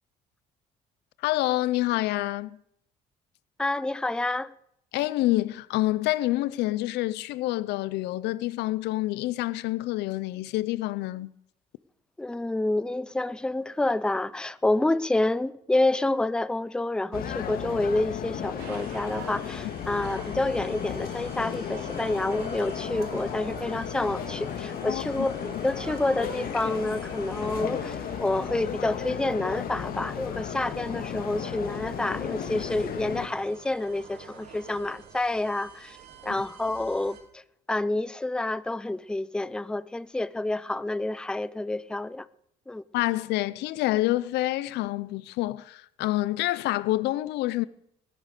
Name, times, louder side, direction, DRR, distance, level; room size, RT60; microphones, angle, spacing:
voice 1, 1.2-2.6 4.9-11.3 24.9-25.0 42.9-47.7, left 17 dB, 85° left, 0.6 m, -27 dB
voice 2, 3.6-4.5 12.2-36.0 36.2-37.4 37.7-42.3 42.7-42.8, left 2 dB, 5° left, 0.5 m, -28 dB
sound 1, 17.1-33.3, left 8 dB, 60° left, 2.1 m, -34 dB
sound 2, 18.6-37.2, right 6 dB, 80° right, 3.8 m, -47 dB
20.5 x 10.5 x 6.7 m
cardioid pair, 110°, 17 cm